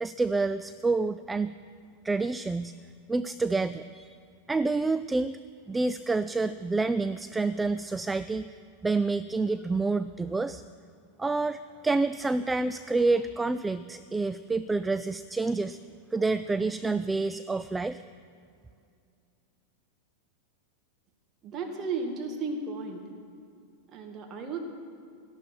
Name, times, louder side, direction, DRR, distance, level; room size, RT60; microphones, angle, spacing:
voice 1, 0.0-1.6 2.0-2.8 3.1-4.2 4.5-5.4 5.7-8.4 8.8-10.6 11.2-15.8 16.1-18.0, right 3 dB, 10° right, 13 dB, 0.3 m, -28 dB
voice 2, 21.4-23.0 23.9-24.6, right 4 dB, 30° right, 2 dB, 2.1 m, -34 dB
17.5 x 12.5 x 4.6 m, 2.4 s
figure-of-eight pair, 90°, 0 cm